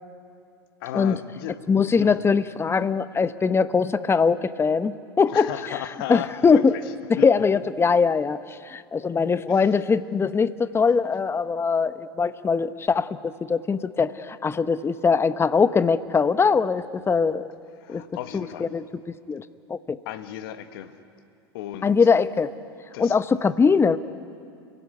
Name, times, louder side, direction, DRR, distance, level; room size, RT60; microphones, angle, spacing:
voice 1, 0.8-1.6 2.0-2.3 5.3-7.3 9.5-9.8 17.8-18.7 20.0-21.0 21.5-22.1 22.9-23.2, left 12 dB, 65° left, 10 dB, 1.5 m, -35 dB
voice 2, 1.7-5.5 6.1-6.7 7.1-8.4 8.7-17.5 17.9-18.0 18.3-18.5 18.7-18.8 19.3-19.4 19.7-20.0 21.8-22.5 23.0-24.0, left 5 dB, 20° left, 14 dB, 0.9 m, -21 dB
29.5 x 16.0 x 9.6 m, 2.3 s
hypercardioid pair, 90°, 13 cm